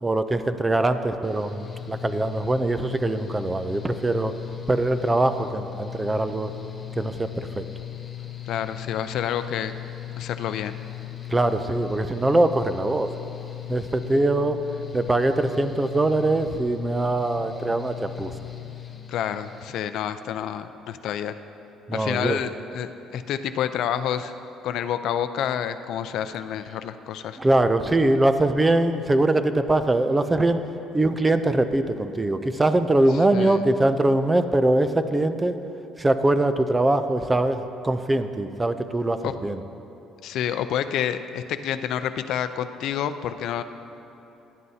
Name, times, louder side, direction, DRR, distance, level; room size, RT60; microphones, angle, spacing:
voice 1, 0.0-4.3 4.7-6.5 7.0-7.6 11.3-13.1 13.7-14.6 14.9-18.3 21.9-22.4 27.4-30.6 30.9-35.5 36.0-39.6, right 2 dB, 10° right, 10 dB, 0.5 m, -22 dB
Mechanical fan, 1.2-19.7, left 13 dB, 20° left, 1.0 m, -38 dB
voice 2, 8.5-9.7 10.2-10.7 19.1-21.4 21.9-24.3 24.6-27.4 33.3-33.6 39.2-39.3 40.2-43.6, left 9 dB, 60° left, 10 dB, 0.5 m, -28 dB
19.0 x 11.0 x 2.8 m, 2.9 s
cardioid pair, 155°, 0 cm